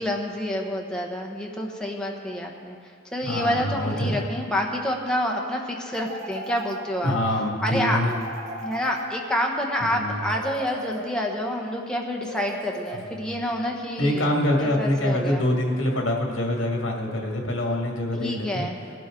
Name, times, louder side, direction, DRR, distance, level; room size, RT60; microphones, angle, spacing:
voice 1, 0.0-2.8 3.1-7.2 7.6-8.0 8.6-14.3 14.6-15.4 18.2-18.8, left 1 dB, 5° left, 0 dB, 1.2 m, -28 dB
voice 2, 3.2-4.2 7.0-8.2 9.8-10.2 12.9-13.3 14.0-18.7, left 1 dB, 70° left, 0 dB, 2.0 m, -25 dB
sound 1, 5.9-7.2 8.1-9.6 10.3-11.5 12.2-13.4, right 1 dB, 85° right, 1.8 m, -38 dB
17.5 x 12.0 x 3.8 m, 2.3 s
head